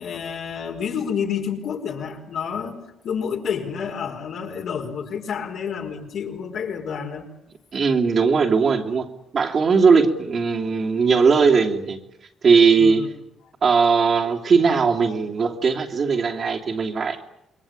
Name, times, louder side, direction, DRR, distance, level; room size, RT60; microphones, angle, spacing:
voice 1, 0.0-7.3 12.8-13.1, left 7 dB, 70° left, 4.9 m, -29 dB
voice 2, 7.7-9.1 9.3-12.0 12.4-13.0 13.6-17.2, right 5 dB, 50° right, 3.0 m, -19 dB
27.0 x 22.0 x 9.0 m
cardioid pair, 90°, 0 cm